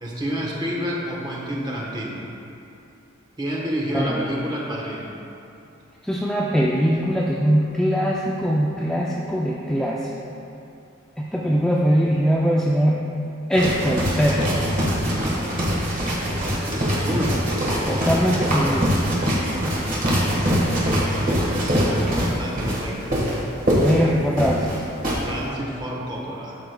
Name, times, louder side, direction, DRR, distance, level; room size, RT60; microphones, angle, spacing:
voice 1, 0.0-2.2 3.4-5.2 16.9-17.4 21.4-23.3 25.2-26.6, equal, 20° right, -3 dB, 1.0 m, -29 dB
voice 2, 6.1-10.0 11.2-13.0 13.5-14.7 17.9-19.0 23.8-24.8, equal, 5° left, -5 dB, 0.3 m, -21 dB
sound 1, 13.5-25.2, equal, 45° right, 1.5 m, -23 dB
12.5 x 4.8 x 2.2 m, 2.7 s
head